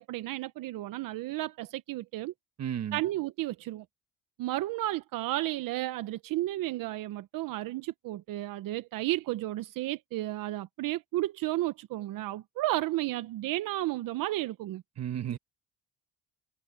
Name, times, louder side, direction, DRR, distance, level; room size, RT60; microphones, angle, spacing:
voice 1, 0.0-2.3 2.9-3.8 4.4-14.8, right 16 dB, 70° right, 0.9 m, -33 dB
voice 2, 2.6-3.0 15.0-15.4, right 9 dB, 50° right, 1.6 m, -33 dB
cardioid pair, 90°, 34 cm